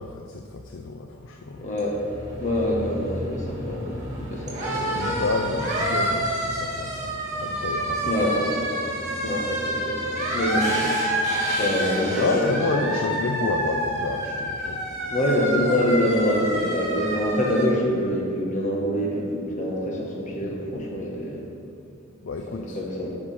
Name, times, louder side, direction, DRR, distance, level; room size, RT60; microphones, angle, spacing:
voice 1, 0.0-1.7 4.7-8.1 12.2-14.9 20.4-20.9 22.2-22.8, left 3 dB, 65° left, 3 dB, 0.5 m, -30 dB
sound 1, 1.2-17.7, right 1 dB, 35° right, 2.2 m, -28 dB
voice 2, 1.6-2.1 2.4-5.2 8.0-8.5 9.2-10.0 10.3-10.7 11.5-13.1 15.1-21.4 22.5-23.1, equal, 40° left, -2 dB, 1.5 m, -25 dB
9.8 x 6.2 x 4.4 m, 2.5 s
head